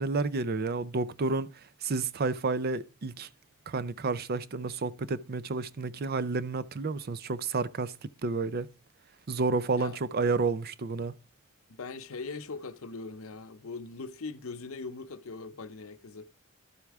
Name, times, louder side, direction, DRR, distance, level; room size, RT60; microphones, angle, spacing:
voice 1, 0.0-1.5 1.8-3.3 3.7-8.7 9.3-11.1, right 3 dB, 45° right, 0.5 m, -30 dB
voice 2, 11.7-16.3, left 4 dB, 70° left, 0.7 m, -40 dB
12.0 x 8.1 x 3.5 m
head